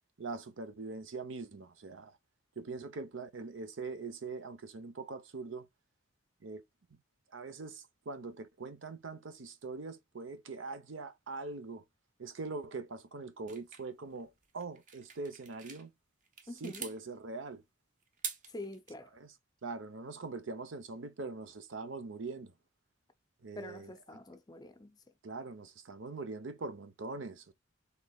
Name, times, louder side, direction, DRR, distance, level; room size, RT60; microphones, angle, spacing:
voice 1, 0.2-2.1 2.6-5.7 6.4-6.6 6.9-7.0 7.3-11.8 12.2-15.9 16.6-17.6 19.1-19.3 19.6-22.5 23.4-24.2 25.2-27.5, right 3 dB, 75° right, 0.7 m, -42 dB
sound 1, 13.5-15.8 16.2-17.0 18.0-18.9, right 6 dB, 40° right, 0.8 m, -44 dB
voice 2, 16.5-16.9 18.5-19.1 23.6-25.0, left 2 dB, 20° left, 0.5 m, -46 dB
4.5 x 3.3 x 2.3 m
head